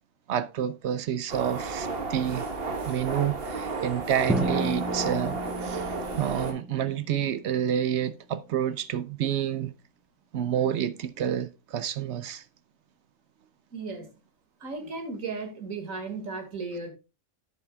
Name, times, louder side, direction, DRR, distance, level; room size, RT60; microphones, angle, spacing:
voice 1, 0.3-2.4 2.9-5.9 6.2-9.7 10.3-12.4, right 9 dB, 65° right, 0.8 m, -29 dB
sound 1, 1.3-6.5, right 3 dB, 50° right, 1.4 m, -32 dB
Drum, 4.3-8.1, equal, ahead, 0.7 m, -33 dB
voice 2, 13.7-14.2 14.6-16.9, right 4 dB, 85° right, 2.4 m, -35 dB
11.0 x 8.6 x 2.3 m
omnidirectional pair, 1.4 m